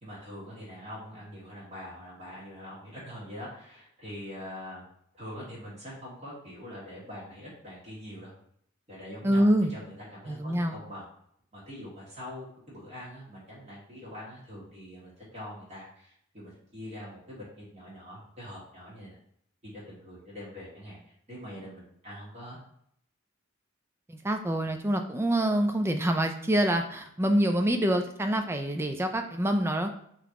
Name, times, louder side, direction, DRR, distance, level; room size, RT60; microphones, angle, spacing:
voice 1, 0.0-4.8 5.1-8.3 8.9-11.0 11.5-19.2 19.7-21.0 21.3-22.6, equal, 35° right, -7 dB, 1.5 m, -43 dB
voice 2, 9.2-9.7 10.3-10.8 24.1-29.9, right 1 dB, 10° right, 6 dB, 0.3 m, -26 dB
3.8 x 2.9 x 3.6 m, 0.68 s
head